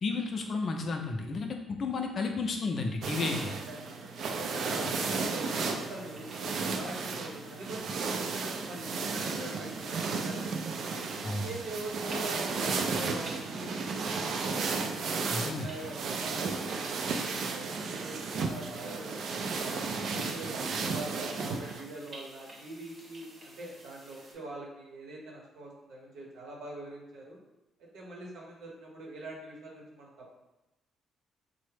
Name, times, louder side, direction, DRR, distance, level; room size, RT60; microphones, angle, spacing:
voice 1, 0.0-3.5 11.2-11.5 15.3-15.7, left 3 dB, 50° left, 3 dB, 0.4 m, -32 dB
sound 1, 3.0-21.8, right 4 dB, 65° right, 0.3 m, -34 dB
voice 2, 3.8-10.9 11.4-15.0 15.4-20.5 20.8-27.4 27.8-30.4, right 1 dB, 80° right, -2 dB, 0.8 m, -43 dB
sound 2, 4.8-24.3, right 1 dB, 40° right, 0.8 m, -53 dB
3.3 x 2.0 x 3.2 m, 0.98 s
cardioid pair, 90°, 0 cm